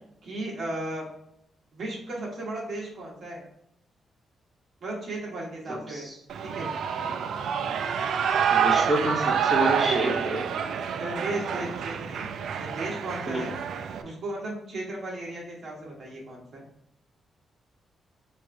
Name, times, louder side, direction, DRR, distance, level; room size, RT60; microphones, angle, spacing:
voice 1, 0.2-1.0 1.7-3.4 4.8-6.1 6.4-6.7 11.0-12.2 12.6-13.5 14.0-16.6, right 2 dB, 50° right, -3 dB, 1.3 m, -35 dB
voice 2, 5.7-6.1 8.5-10.4 13.3-13.4, right 1 dB, 5° right, -5 dB, 1.1 m, -28 dB
Shout / Cheering, 6.3-14.0, right 7 dB, 65° right, 0.3 m, -27 dB
4.7 x 2.5 x 4.5 m, 0.76 s
wide cardioid pair, 175°, 0 cm